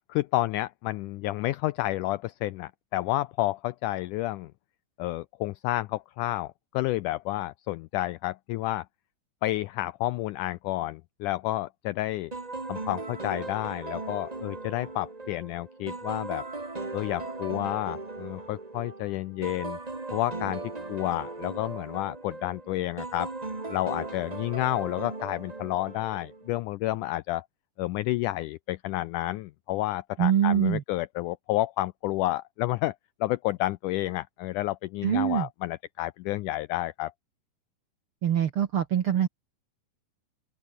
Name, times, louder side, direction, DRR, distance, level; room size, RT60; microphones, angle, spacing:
voice 1, 0.0-4.5 5.0-8.9 9.4-12.3 12.7-16.5 16.9-19.8 20.1-20.6 20.9-23.3 23.7-27.5 27.8-33.0 33.2-37.1, left 17 dB, 85° left, 1.8 m, -30 dB
sound 1, 12.3-26.5, right 3 dB, 25° right, 0.8 m, -38 dB
voice 2, 30.2-30.8 35.0-35.5 38.2-39.3, right 10 dB, 65° right, 1.3 m, -24 dB
open air
omnidirectional pair, 4.2 m